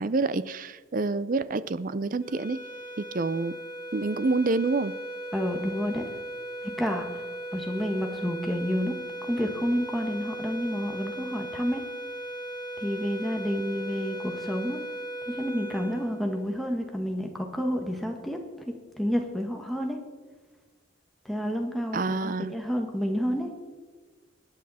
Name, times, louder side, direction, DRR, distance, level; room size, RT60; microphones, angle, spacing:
voice 1, 0.0-2.6 3.1-3.5 3.9-4.9 21.9-22.5, right 3 dB, 45° right, 16 dB, 0.5 m, -27 dB
sound 1, 2.2-16.8, right 1 dB, 35° left, 5.6 m, -38 dB
voice 2, 5.3-6.0 6.6-8.9 9.3-11.8 12.8-14.8 15.3-18.4 18.6-20.0 21.2-23.5, equal, ahead, 2 dB, 1.6 m, -30 dB
24.0 x 9.8 x 4.2 m, 1.3 s
head